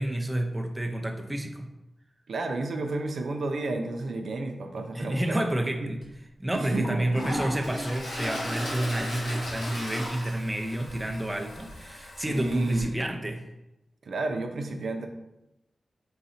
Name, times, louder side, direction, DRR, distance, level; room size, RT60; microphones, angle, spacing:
voice 1, 0.0-1.7 4.9-6.0 6.4-13.4, right 1 dB, 15° right, 3 dB, 0.5 m, -29 dB
voice 2, 2.3-5.5 5.8-5.9 6.5-7.1 12.3-13.0 14.0-15.1, right 2 dB, 75° right, 4 dB, 0.4 m, -32 dB
Toilet flush, 6.0-6.1 6.6-12.8, equal, 90° left, 1.3 m, -36 dB
3.8 x 2.6 x 4.2 m, 0.92 s
wide cardioid pair, 80°, 0 cm